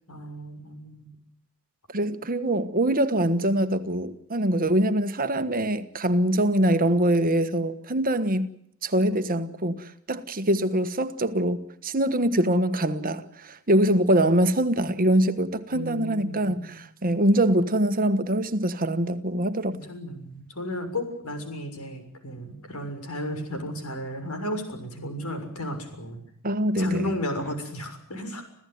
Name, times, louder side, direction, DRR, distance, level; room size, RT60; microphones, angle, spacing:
voice 1, 0.1-1.1 15.7-16.7 19.7-26.2 26.8-28.4, left 1 dB, 90° left, 6.7 m, -34 dB
voice 2, 1.9-8.5 8.8-19.8 26.4-27.1, right 1 dB, 40° right, 1.4 m, -24 dB
27.5 x 16.0 x 9.4 m
head